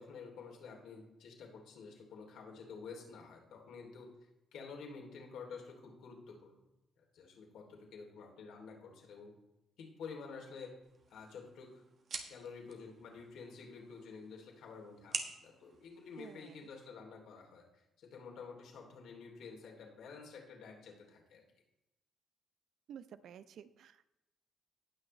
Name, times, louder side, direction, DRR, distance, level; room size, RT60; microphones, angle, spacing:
voice 1, 0.0-4.1 4.5-6.6 7.0-9.3 9.8-10.7 11.1-11.8 12.3-17.6 18.0-21.4, left 5 dB, 80° left, 1 dB, 2.9 m, -50 dB
sound 1, 10.8-16.8, right 4 dB, 55° right, 1.4 m, -48 dB
voice 2, 16.2-16.7 22.9-24.1, right 8 dB, 70° right, 14 dB, 0.5 m, -52 dB
18.5 x 6.2 x 3.2 m, 0.93 s
cardioid pair, 90°, 0 cm